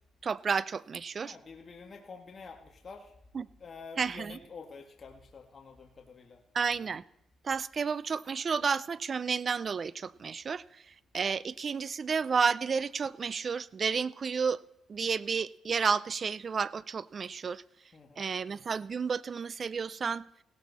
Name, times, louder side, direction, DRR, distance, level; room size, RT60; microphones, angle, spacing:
voice 1, 0.2-1.4 3.3-3.5 4.0-4.4 6.5-7.0 7.4-10.8 11.1-14.6 14.9-17.6 18.2-20.2, right 5 dB, 40° right, 19 dB, 0.5 m, -31 dB
voice 2, 1.2-3.1 3.6-6.4 17.9-18.3, left 4 dB, 40° left, 2 dB, 1.9 m, -48 dB
17.0 x 13.5 x 4.2 m, 0.78 s
cardioid pair, 90°, 0 cm